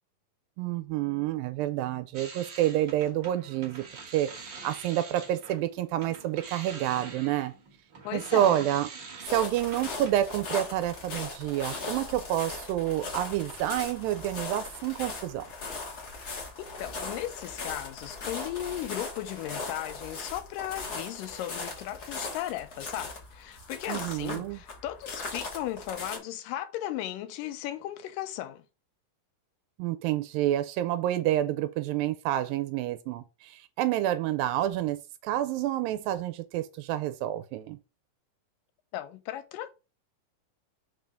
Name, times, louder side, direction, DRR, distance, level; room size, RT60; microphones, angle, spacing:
voice 1, 0.6-3.9 4.1-7.5 8.1-8.9 9.3-15.5 23.9-24.6 29.8-35.0 35.2-37.8, right 13 dB, 85° right, 2.3 m, -28 dB
sound 1, 2.1-5.6 6.0-10.2, right 4 dB, 50° right, 1.4 m, -45 dB
voice 2, 8.0-8.6 16.6-28.6 38.9-39.7, left 13 dB, 80° left, 2.2 m, -36 dB
sound 2, 9.3-26.2, left 3 dB, 55° left, 1.0 m, -39 dB
5.6 x 3.4 x 5.1 m
omnidirectional pair, 4.0 m